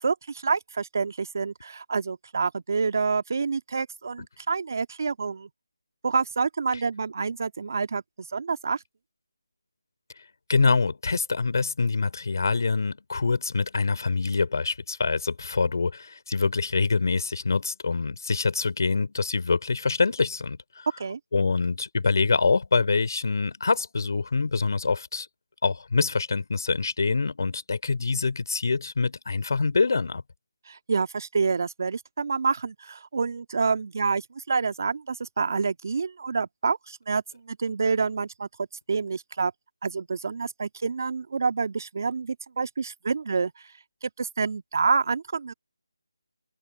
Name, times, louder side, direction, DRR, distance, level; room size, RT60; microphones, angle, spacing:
voice 1, 0.0-5.5 6.0-8.8 21.0-21.2 30.7-39.5 39.8-43.5 44.0-45.5, right 5 dB, 50° right, 1.8 m, -28 dB
voice 2, 10.5-20.9 21.3-25.3 25.6-30.2, left 4 dB, 55° left, 3.4 m, -25 dB
figure-of-eight pair, 165°, 2 cm